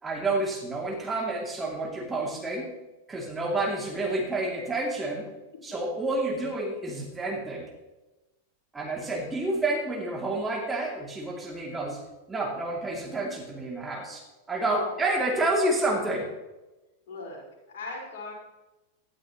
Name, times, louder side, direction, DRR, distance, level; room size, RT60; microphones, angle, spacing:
voice 1, 0.0-2.7 3.1-5.3 5.6-7.7 8.7-12.0 12.3-14.2 14.5-16.3, right 2 dB, 15° right, -1 dB, 2.8 m, -29 dB
voice 2, 14.6-15.6 17.1-18.3, left 3 dB, 55° left, -3 dB, 5.0 m, -39 dB
18.0 x 12.0 x 3.1 m, 1.1 s
figure-of-eight pair, 90°, 0 cm